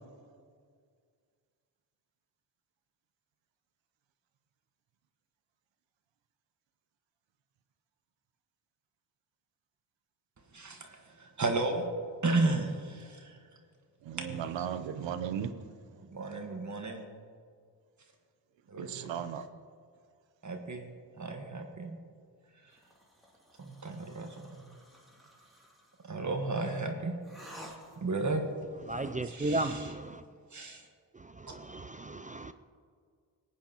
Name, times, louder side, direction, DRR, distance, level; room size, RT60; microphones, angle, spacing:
voice 1, 10.5-11.9 12.2-13.3 14.5-14.6 15.9-17.1 18.7-19.2 20.4-22.0 23.6-24.6 26.0-27.1 28.0-28.4 29.3-29.9 30.5-30.8, right 2 dB, 40° right, 1.4 m, -34 dB
voice 2, 14.1-15.5 18.8-19.4, right 8 dB, 80° right, 0.8 m, -36 dB
sound 1, 22.7-26.1 27.2-28.3, equal, ahead, 2.6 m, -53 dB
voice 3, 28.9-30.2 31.1-32.5, right 2 dB, 20° right, 0.3 m, -35 dB
21.0 x 8.8 x 2.9 m
cardioid pair, 65°, 44 cm